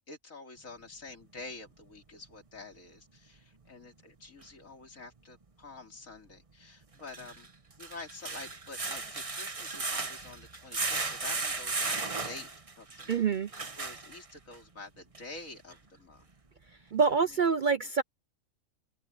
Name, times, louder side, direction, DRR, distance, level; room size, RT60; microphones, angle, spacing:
voice 1, 0.1-7.5 7.8-12.5 12.8-13.3 13.8-16.3 17.1-17.9, left 3 dB, 80° left, 3.4 m, -48 dB
sound 1, 4.4-4.5 6.9-14.6 15.1-15.2 15.7-15.8, right 3 dB, 25° right, 1.2 m, -36 dB
voice 2, 13.1-13.5 16.9-18.0, right 5 dB, 50° right, 0.6 m, -26 dB
omnidirectional pair, 1.4 m